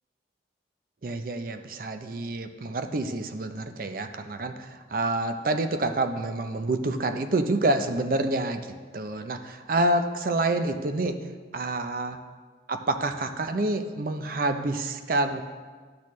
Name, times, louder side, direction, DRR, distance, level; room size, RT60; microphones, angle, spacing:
voice 1, 1.0-12.2 12.7-15.4, right 2 dB, 50° right, 8 dB, 0.5 m, -28 dB
12.0 x 6.2 x 3.1 m, 1.5 s
head